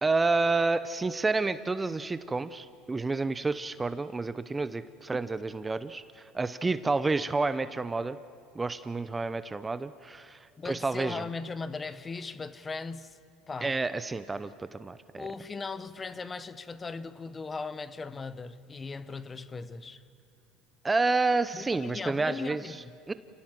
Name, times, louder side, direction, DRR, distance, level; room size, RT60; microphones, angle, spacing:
voice 1, 0.0-8.2 8.5-10.4 10.6-11.2 13.6-15.3 20.8-22.7 23.1-23.2, right 3 dB, 15° right, 0.7 m, -29 dB
voice 2, 10.6-13.2 13.5-13.7 15.1-20.0 21.5-22.9, left 4 dB, 20° left, 1.0 m, -38 dB
29.5 x 18.5 x 7.6 m
supercardioid pair, 105°, 0 cm